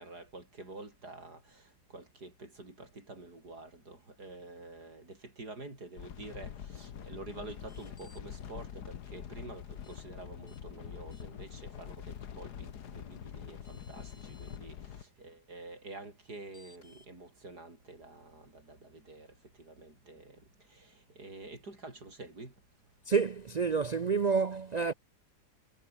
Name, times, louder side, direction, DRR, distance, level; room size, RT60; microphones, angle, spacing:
voice 1, 0.0-20.4 20.7-22.5, right 2 dB, 85° right, 6.4 m, -48 dB
sound 1, 6.0-15.0, left 9 dB, 90° left, 1.8 m, -45 dB
sound 2, 7.6-8.2 9.8-10.0 10.5-10.6 11.1-11.5 13.2-13.3 13.6-14.6 16.5-17.1, left 2 dB, 50° left, 7.4 m, -61 dB
voice 2, 23.1-24.9, right 5 dB, 70° right, 0.4 m, -29 dB
omnidirectional pair, 1.7 m